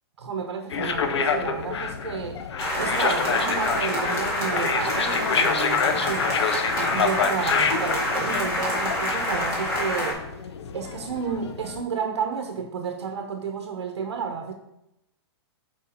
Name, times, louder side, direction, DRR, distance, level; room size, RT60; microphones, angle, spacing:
voice 1, 0.2-2.4 2.8-10.2 10.7-14.5, right 6 dB, 90° right, 4 dB, 0.8 m, -31 dB
sound 1, 0.7-11.8, left 6 dB, 85° left, 0.6 m, -28 dB
sound 2, 2.6-10.1, left 1 dB, 20° left, 1.8 m, -27 dB
5.7 x 4.6 x 4.2 m, 0.85 s
hypercardioid pair, 150°, 14 cm